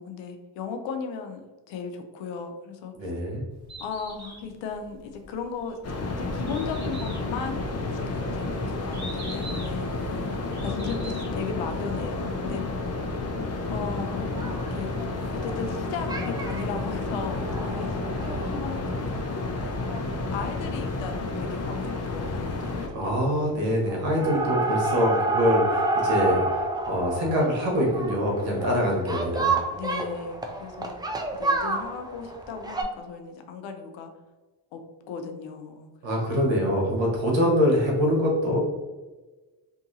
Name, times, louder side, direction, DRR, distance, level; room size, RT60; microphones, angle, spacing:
voice 1, 0.0-1.4 1.7-3.1 3.8-5.8 6.1-7.6 7.9-9.9 10.6-12.6 13.7-14.4 14.7-14.9 15.3-19.8 20.3-23.2 29.7-30.9 31.3-34.1 34.7-34.8 35.1-35.9 36.3-36.5, left 5 dB, 85° left, 6 dB, 0.6 m, -36 dB
voice 2, 2.9-3.4 22.9-29.6 36.0-38.6, equal, 80° right, -2 dB, 1.1 m, -24 dB
Bird, 3.5-11.5, right 1 dB, 40° right, 1.2 m, -45 dB
sound 1, 5.8-22.9, left 2 dB, 35° left, 0.6 m, -31 dB
sound 2, 14.2-15.8 16.1-16.6 17.1-19.2 19.6-19.7 19.9-20.0 20.3-20.4 21.8-22.0 22.2-22.7 23.0-23.5 23.9-32.8, right 2 dB, 10° right, 0.3 m, -29 dB
2.7 x 2.6 x 2.6 m, 1.2 s
cardioid pair, 70°, 44 cm